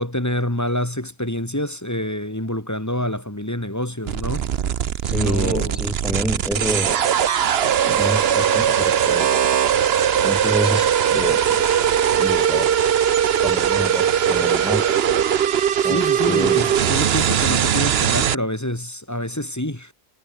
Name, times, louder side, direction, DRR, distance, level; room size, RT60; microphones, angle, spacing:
voice 1, 0.0-4.5 5.1-5.8 15.9-19.9, left 1 dB, 15° left, 2.2 m, -27 dB
sound 1, 4.1-18.3, right 9 dB, 65° right, 1.0 m, -20 dB
voice 2, 5.0-7.0 7.8-9.3 10.2-11.6 12.2-12.7 13.4-14.8 15.8-16.7, equal, ahead, 4.8 m, -27 dB
omnidirectional pair, 1.1 m